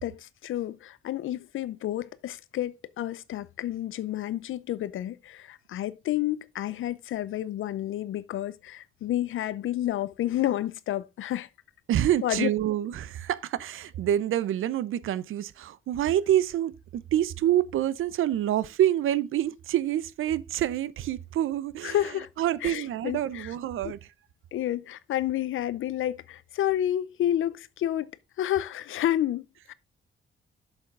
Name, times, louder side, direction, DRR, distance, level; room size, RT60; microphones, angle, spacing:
voice 1, 0.0-11.5 12.2-12.5 21.8-22.3 22.6-23.5 23.8-23.9 24.5-28.1 28.4-29.7, left 12 dB, 80° left, 0.6 m, -30 dB
voice 2, 11.9-22.0 22.4-24.0, right 12 dB, 85° right, 0.6 m, -27 dB
7.1 x 7.1 x 3.7 m
cardioid pair, 105°, 20 cm